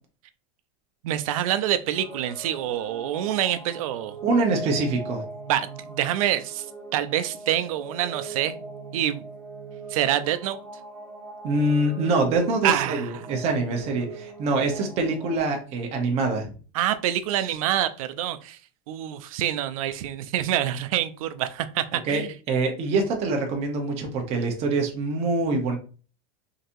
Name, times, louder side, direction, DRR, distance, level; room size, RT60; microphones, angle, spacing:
voice 1, 1.0-4.2 5.5-6.7 6.9-8.6 8.9-9.3 9.9-10.6 12.6-13.1 16.7-18.6 18.9-22.3, right 12 dB, 85° right, 0.5 m, -26 dB
sound 1, 1.9-15.4, right 3 dB, 15° right, 1.2 m, -41 dB
voice 2, 4.2-5.2 11.4-16.5 22.1-25.8, right 2 dB, 40° right, 0.9 m, -25 dB
3.9 x 2.8 x 2.6 m
supercardioid pair, 150°, 17 cm